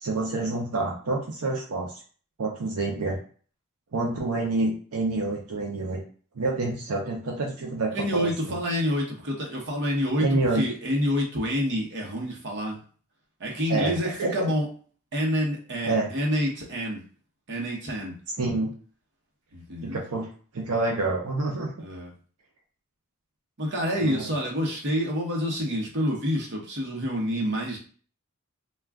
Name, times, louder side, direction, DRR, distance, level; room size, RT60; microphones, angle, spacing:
voice 1, 0.0-1.9 2.4-3.2 3.9-6.0 6.4-8.6 10.2-10.6 13.7-14.3 15.8-16.1 18.4-18.7 19.8-20.3 20.5-21.7 24.0-24.3, right 2 dB, 85° right, -1 dB, 0.6 m, -27 dB
voice 2, 7.9-12.8 13.4-14.7 15.1-17.0 17.5-18.2 19.5-20.0 21.8-22.1 23.6-27.8, equal, 55° right, -2 dB, 0.9 m, -28 dB
2.3 x 2.2 x 3.4 m, 0.42 s
head